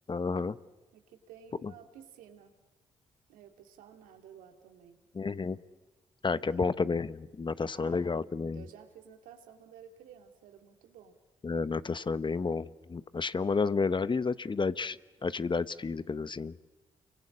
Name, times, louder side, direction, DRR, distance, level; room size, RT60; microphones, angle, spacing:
voice 1, 0.1-0.6 1.6-1.7 5.1-5.6 6.2-8.6 11.4-15.0 15.2-16.5, left 4 dB, 35° left, 15 dB, 1.0 m, -31 dB
voice 2, 0.9-2.5 3.3-5.0 6.3-6.7 7.7-8.0 8.5-11.1, right 8 dB, 80° right, 5 dB, 2.4 m, -53 dB
29.0 x 23.5 x 8.7 m, 1.2 s
hypercardioid pair, 45°, 14 cm